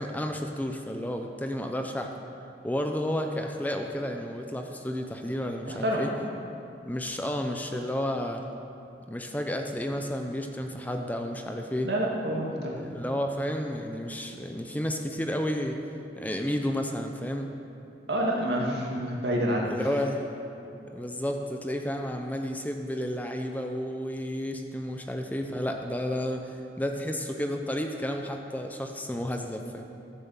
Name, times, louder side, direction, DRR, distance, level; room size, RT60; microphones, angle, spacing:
voice 1, 0.0-2.1 2.6-6.1 6.8-8.4 9.1-11.9 12.8-15.8 16.2-17.5 19.6-20.2 20.9-29.8, equal, 10° left, 4 dB, 0.6 m, -31 dB
voice 2, 5.7-6.0 11.8-12.8 18.1-19.7, equal, 70° right, -2 dB, 2.2 m, -28 dB
13.5 x 7.5 x 7.2 m, 2.7 s
head